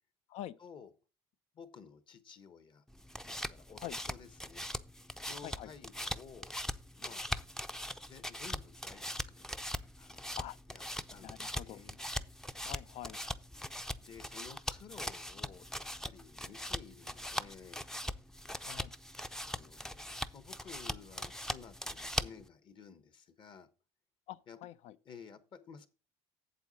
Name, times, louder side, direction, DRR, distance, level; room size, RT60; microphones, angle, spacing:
voice 1, 1.5-2.8 3.3-4.6 5.3-6.6 7.0-7.2 8.0-9.5 10.0-10.4 10.7-12.0 14.0-17.9 19.5-23.7 24.5-24.6 25.0-25.9, left 6 dB, 45° left, 1.2 m, -54 dB
sound 1, 2.9-22.5, equal, 5° left, 0.5 m, -41 dB
voice 2, 11.2-11.8 12.6-13.2 18.6-18.9 24.3-25.0, left 13 dB, 65° left, 0.6 m, -45 dB
8.1 x 7.6 x 4.0 m
cardioid pair, 115°, 12 cm